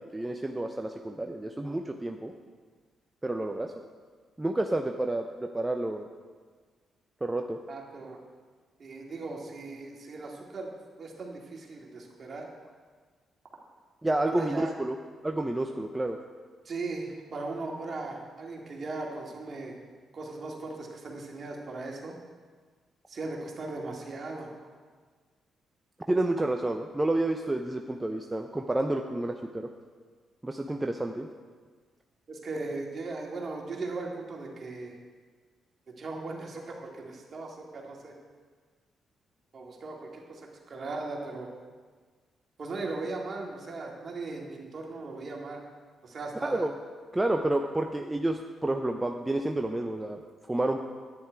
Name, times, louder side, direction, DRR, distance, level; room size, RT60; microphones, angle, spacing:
voice 1, 0.0-2.3 3.2-3.7 4.4-6.1 7.2-7.6 14.0-15.0 15.2-16.2 26.1-29.7 30.4-31.3 46.4-46.7 47.1-50.2 50.5-50.8, right 1 dB, 20° right, 3 dB, 0.8 m, -29 dB
voice 2, 7.7-8.2 8.8-10.7 11.0-12.5 14.2-14.7 16.6-19.7 20.1-22.1 23.1-24.5 32.3-35.0 35.9-38.2 39.5-41.5 42.6-45.6 46.0-46.7, right 3 dB, 50° right, -1 dB, 2.5 m, -38 dB
10.5 x 9.7 x 4.7 m, 1.5 s
hypercardioid pair, 45°, 0 cm